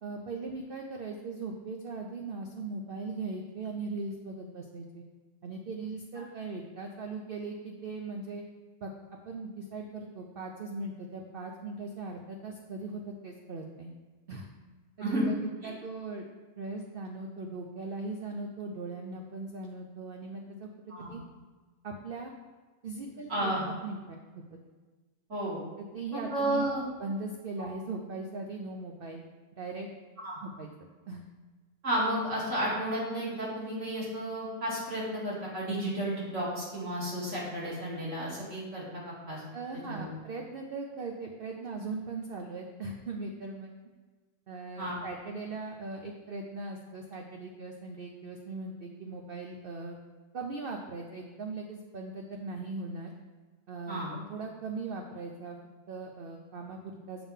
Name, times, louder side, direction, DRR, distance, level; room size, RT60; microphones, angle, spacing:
voice 1, 0.0-5.0 5.4-8.4 8.8-8.9 9.3-13.9 14.3-14.5 15.0-15.4 15.6-16.2 16.6-21.2 21.8-22.3 22.8-23.5 23.8-24.6 25.8-26.7 27.0-29.2 29.5-29.9 30.4-30.7 31.1-31.2 39.5-43.7 44.5-50.0 50.3-53.1 53.7-55.6 55.9-57.3, right 3 dB, 70° right, 2 dB, 0.5 m, -39 dB
voice 2, 23.3-23.6 25.3-25.6 26.1-26.8 27.6-27.7 30.2-30.4 31.8-38.8 39.3-39.4 39.9-40.1 44.8-44.9 53.9-54.1, right 1 dB, 50° right, -7 dB, 2.4 m, -32 dB
6.9 x 3.6 x 5.5 m, 1.3 s
omnidirectional pair, 1.6 m